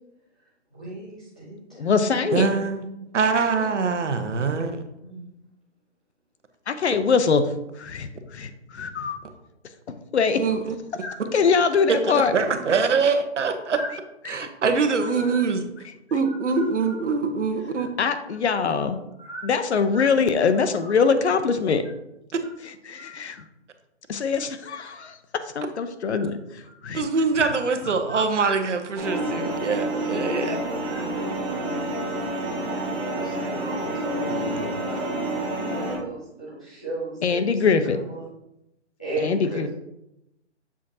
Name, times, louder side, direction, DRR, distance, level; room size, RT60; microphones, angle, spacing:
voice 1, 0.7-2.6 2.9-3.0 3.6-4.5 5.0-5.3 11.0-11.1 13.7-13.9 15.0-15.4 16.2-16.6 17.8-17.9 19.2-19.5 19.9-20.1 23.0-23.1 26.1-26.3 28.4-28.5 30.9-31.0 33.1-35.1 35.7-37.6 37.9-38.2 39.0-39.7, right 1 dB, 5° left, -11 dB, 0.4 m, -37 dB
voice 2, 1.8-2.5 6.7-7.5 7.8-9.2 10.1-10.4 11.3-12.3 14.3-14.5 18.0-19.0 19.4-21.8 22.9-23.5 24.1-27.1 28.1-28.2 37.2-38.0 39.2-39.7, left 5 dB, 65° left, 10 dB, 0.7 m, -23 dB
voice 3, 2.3-2.9 3.1-4.8 10.4-10.8 11.9-13.8 14.3-15.6 16.1-17.9 26.9-30.6 34.3-34.7, right 4 dB, 80° right, 7 dB, 1.0 m, -24 dB
sound 1, 29.0-36.0, right 1 dB, 20° right, 2.2 m, -28 dB
7.1 x 5.0 x 2.8 m, 0.85 s
hypercardioid pair, 160°, 35 cm